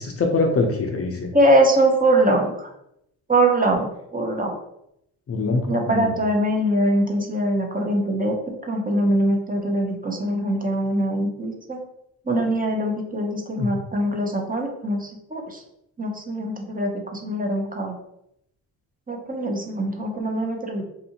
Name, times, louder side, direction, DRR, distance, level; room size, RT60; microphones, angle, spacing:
voice 1, 0.0-1.3 5.3-6.1 13.6-13.7, left 3 dB, 35° left, 3 dB, 0.5 m, -23 dB
voice 2, 1.3-2.7 3.3-4.5 5.7-11.8 12.3-15.6 16.0-18.0 19.1-20.8, right 1 dB, 20° right, 1 dB, 0.6 m, -22 dB
2.6 x 2.5 x 2.8 m, 0.79 s
supercardioid pair, 65°, 43 cm